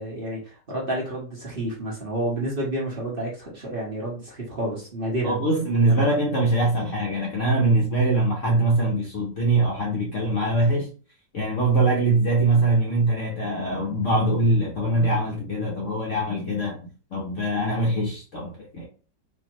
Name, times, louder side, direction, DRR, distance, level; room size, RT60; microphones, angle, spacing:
voice 1, 0.0-5.4 5.8-6.0, right 1 dB, 35° right, 1.2 m, -30 dB
voice 2, 5.2-10.9 11.3-16.8 17.1-18.9, right 2 dB, 55° left, 1.0 m, -22 dB
4.4 x 2.8 x 2.9 m
omnidirectional pair, 1.9 m